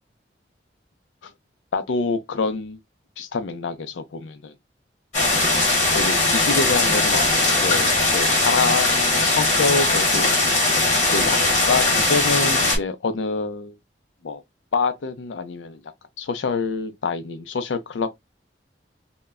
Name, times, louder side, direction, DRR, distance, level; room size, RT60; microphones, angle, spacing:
voice 1, 1.7-2.8 3.2-4.5 5.9-10.4 11.0-11.4 11.6-13.8 14.2-14.4 14.7-15.8 16.2-18.1, left 4 dB, 90° left, 0.5 m, -26 dB
sound 1, 5.1-12.8, left 2 dB, 40° left, 1.1 m, -19 dB
2.2 x 2.0 x 3.4 m
head